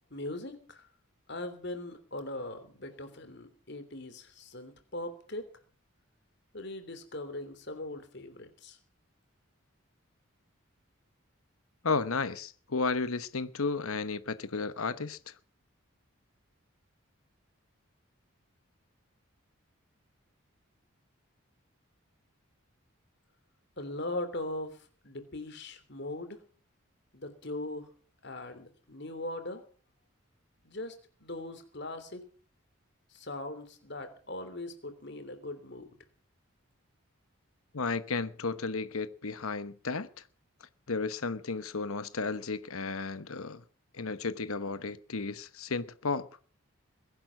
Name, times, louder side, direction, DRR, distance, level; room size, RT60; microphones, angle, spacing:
voice 1, 0.1-0.9 1.3-5.5 6.5-8.8 23.8-26.4 27.1-27.9 28.2-29.6 30.6-32.2 33.1-36.0, left 2 dB, 50° left, 3.2 m, -40 dB
voice 2, 11.8-15.3 37.7-40.1 40.9-43.6 43.9-46.3, left 4 dB, 85° left, 1.0 m, -33 dB
21.5 x 11.0 x 6.1 m
head